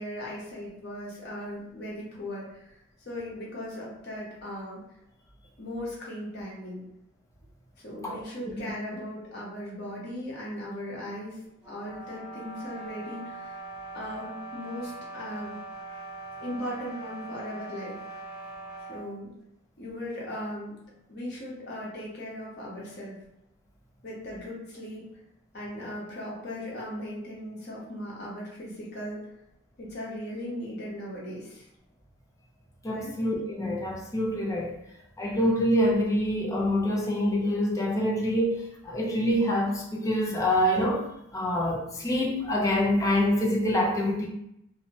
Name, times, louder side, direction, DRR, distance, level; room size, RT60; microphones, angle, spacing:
voice 1, 0.0-2.7 3.0-4.8 5.6-6.9 7.8-11.4 11.7-13.6 13.9-15.6 16.4-18.0 18.8-19.3 19.8-20.7 21.1-23.2 24.0-25.0 25.5-29.2 29.8-31.6 32.9-33.1, left 1 dB, 55° left, -5 dB, 1.0 m, -38 dB
voice 2, 8.0-8.5 32.8-34.8 35.2-41.1 41.3-44.3, equal, 15° left, -2 dB, 0.4 m, -26 dB
sound 1, 11.6-19.1, right 2 dB, 5° right, 1.1 m, -41 dB
2.8 x 2.1 x 2.8 m, 0.79 s
head